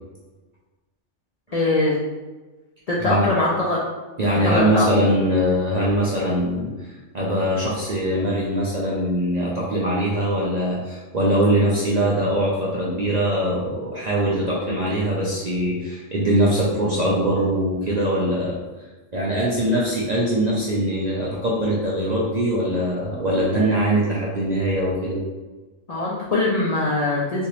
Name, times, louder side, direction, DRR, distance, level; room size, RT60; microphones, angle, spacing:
voice 1, 1.5-2.0 2.9-3.8 4.4-4.9 25.9-27.5, left 2 dB, 60° left, -5 dB, 0.4 m, -22 dB
voice 2, 4.2-6.7 7.1-18.6 19.1-25.2, right 1 dB, 50° right, -6 dB, 0.5 m, -22 dB
3.3 x 2.9 x 3.0 m, 1.2 s
omnidirectional pair, 1.4 m